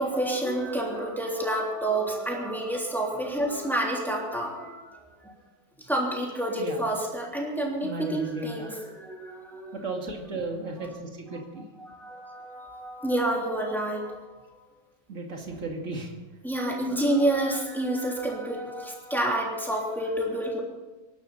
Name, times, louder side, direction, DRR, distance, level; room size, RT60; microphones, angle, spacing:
voice 1, 0.0-5.3 5.8-9.7 11.8-14.4 16.4-20.6, right 1 dB, ahead, -2 dB, 3.3 m, -29 dB
voice 2, 7.8-8.8 9.7-11.7 12.3-12.4 15.1-16.1 16.6-16.7, right 2 dB, 45° right, 2 dB, 2.6 m, -35 dB
25.0 x 12.0 x 4.3 m, 1.2 s
omnidirectional pair, 1.8 m